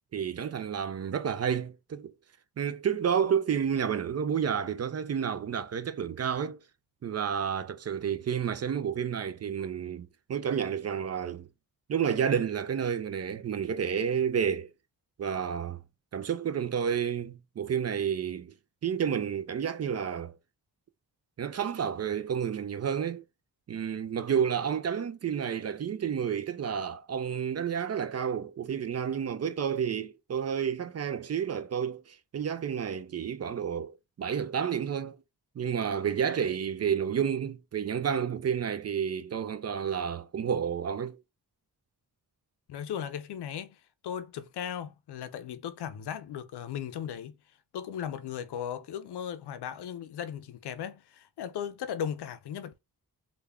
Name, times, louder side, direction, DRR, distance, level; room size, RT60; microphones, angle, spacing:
voice 1, 0.1-2.1 2.6-6.6 7.0-11.5 11.9-14.7 15.2-15.8 16.1-18.5 18.8-20.3 21.4-23.2 23.7-35.2 35.6-41.2, right 8 dB, 40° right, 0.4 m, -30 dB
voice 2, 42.7-47.4 47.7-52.8, left 9 dB, 90° left, 0.6 m, -37 dB
3.4 x 2.3 x 3.4 m
wide cardioid pair, 100°, 39 cm